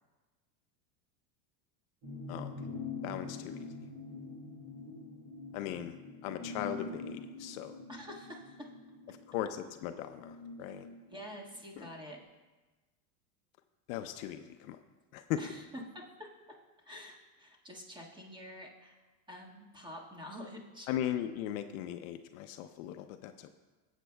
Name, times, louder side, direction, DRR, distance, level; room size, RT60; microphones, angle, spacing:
sound 1, 2.0-11.9 12.2-12.3, left 3 dB, 65° right, 3.5 m, -45 dB
voice 1, 3.0-3.7 5.5-6.0 6.2-7.8 9.1-10.9 11.8-11.9 13.9-14.8 15.1-15.4 20.9-23.5, left 11 dB, 60° left, 8 dB, 0.7 m, -38 dB
voice 2, 7.9-8.7 11.1-12.2 15.4-15.6 15.9-16.3 16.8-19.0 19.3-20.9, equal, 10° right, -2 dB, 1.6 m, -47 dB
16.5 x 8.1 x 2.3 m, 1.3 s
supercardioid pair, 125°, 46 cm